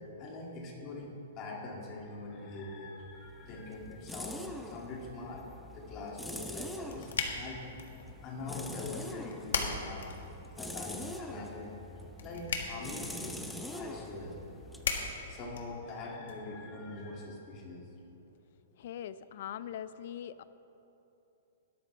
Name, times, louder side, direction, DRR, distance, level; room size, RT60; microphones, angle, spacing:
voice 1, 0.2-5.5 5.7-7.6 8.2-10.1 10.6-11.7 12.2-13.4 13.7-14.4 15.3-17.9 19.0-19.1, left 2 dB, 25° left, -1 dB, 2.2 m, -43 dB
sound 1, 3.1-15.8, left 1 dB, ahead, 0.6 m, -44 dB
sound 2, 6.4-16.3, left 5 dB, 85° left, 1.7 m, -40 dB
voice 2, 18.8-20.4, left 10 dB, 55° left, 15 dB, 0.5 m, -41 dB
16.5 x 13.0 x 3.3 m, 2.9 s
hypercardioid pair, 165°, 0 cm